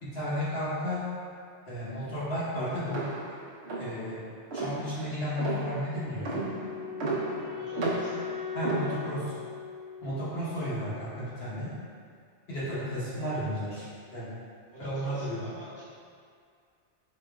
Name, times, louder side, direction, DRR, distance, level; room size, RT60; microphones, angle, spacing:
voice 1, 0.0-1.0 1.7-3.0 3.8-4.1 4.5-6.4 8.5-9.3 10.0-11.7 12.5-14.3 14.8-15.4, equal, 60° left, -11 dB, 1.3 m, -33 dB
sound 1, 2.9-9.4, right 3 dB, 70° right, 1.0 m, -34 dB
Wind instrument woodwind instrument, 5.9-11.0, left 7 dB, 90° right, 1.3 m, -40 dB
voice 2, 7.6-8.1 14.7-15.8, right 2 dB, 15° right, -14 dB, 1.1 m, -46 dB
4.8 x 3.0 x 2.3 m, 2.2 s
omnidirectional pair, 1.2 m